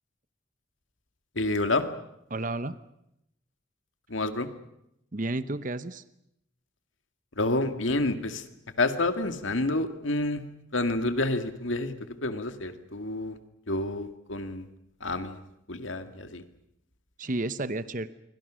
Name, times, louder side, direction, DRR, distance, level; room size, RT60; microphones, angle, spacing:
voice 1, 1.4-1.9 4.1-4.5 7.4-8.5 8.8-10.4 10.7-11.9 12.2-13.4 13.7-14.7 15.0-15.4 15.7-16.4, left 2 dB, 80° left, 8 dB, 2.1 m, -28 dB
voice 2, 2.3-2.8 5.1-6.0 17.2-18.1, right 2 dB, 40° right, 13 dB, 0.9 m, -31 dB
27.5 x 24.0 x 6.3 m, 0.81 s
head